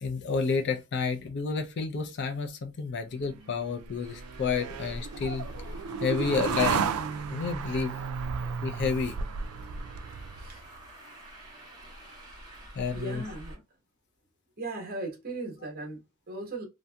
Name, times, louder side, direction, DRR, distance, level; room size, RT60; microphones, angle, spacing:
voice 1, 0.0-5.5 6.0-6.8 7.3-7.9 8.6-9.2 12.7-13.2, left 5 dB, 55° left, 0.5 m, -30 dB
sound 1, 3.3-10.7, right 6 dB, 90° right, 0.3 m, -34 dB
Traffic noise roadway noise, 4.0-13.5, right 1 dB, 20° right, 1.1 m, -47 dB
voice 2, 12.9-13.6 14.6-16.6, right 2 dB, 45° right, 1.1 m, -38 dB
2.7 x 2.6 x 2.2 m
head